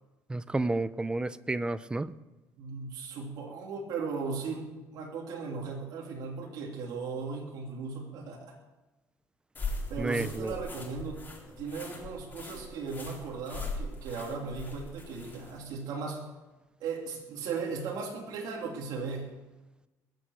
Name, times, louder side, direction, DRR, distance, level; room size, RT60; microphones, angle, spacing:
voice 1, 0.3-2.1 10.0-10.5, right 2 dB, 15° right, 16 dB, 0.6 m, -31 dB
voice 2, 2.6-8.6 9.7-11.2 11.5-16.3 16.8-19.3, right 4 dB, 70° right, -1 dB, 2.9 m, -37 dB
sound 1, 9.5-15.6, left 2 dB, 25° left, 4.0 m, -40 dB
21.5 x 8.1 x 6.5 m, 1.1 s
cardioid pair, 115°, 7 cm